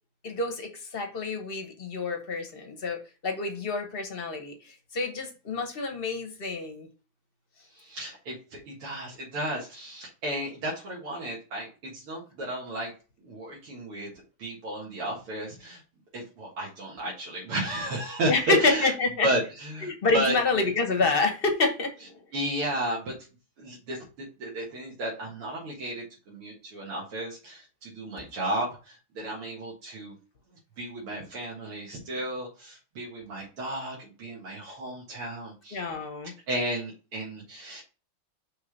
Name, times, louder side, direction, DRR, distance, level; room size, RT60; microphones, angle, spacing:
voice 1, 0.2-6.9 18.3-19.3 19.8-22.1 35.7-36.3, left 3 dB, 40° left, 4 dB, 0.9 m, -28 dB
voice 2, 7.7-12.9 13.2-15.8 16.1-18.9 19.2-20.7 22.3-23.2 23.6-24.0 24.4-30.1 30.8-35.8 36.5-37.8, right 1 dB, 80° right, -4 dB, 2.6 m, -33 dB
5.7 x 3.4 x 5.7 m, 0.34 s
omnidirectional pair, 2.4 m